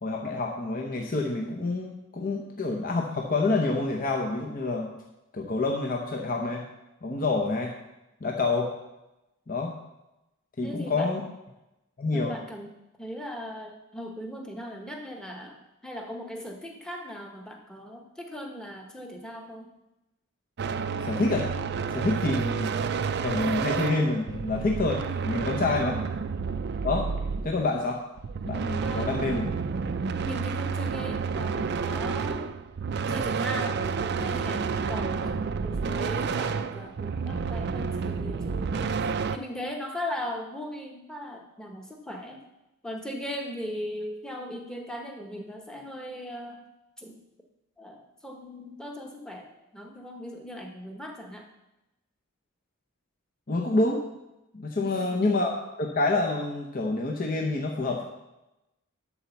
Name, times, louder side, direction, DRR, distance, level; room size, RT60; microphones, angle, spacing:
voice 1, 0.0-4.9 5.3-6.7 7.0-7.7 8.2-8.7 9.5-9.8 10.6-11.2 12.0-12.4 21.0-21.5 21.9-22.7 23.1-26.0 26.8-27.1 27.4-28.0 28.4-29.4 53.5-54.0 54.5-58.0, left 3 dB, 40° left, 0 dB, 0.8 m, -27 dB
voice 2, 10.6-11.1 12.1-12.7 13.0-19.7 25.7-25.8 28.8-29.5 30.2-32.5 33.1-42.4 42.8-46.6 47.0-47.2 47.8-51.5 54.8-55.2, equal, 5° left, 2 dB, 1.0 m, -38 dB
sound 1, 20.6-27.8 28.2-39.4, right 5 dB, 50° right, 0.4 m, -30 dB
11.0 x 4.2 x 7.0 m, 0.96 s
head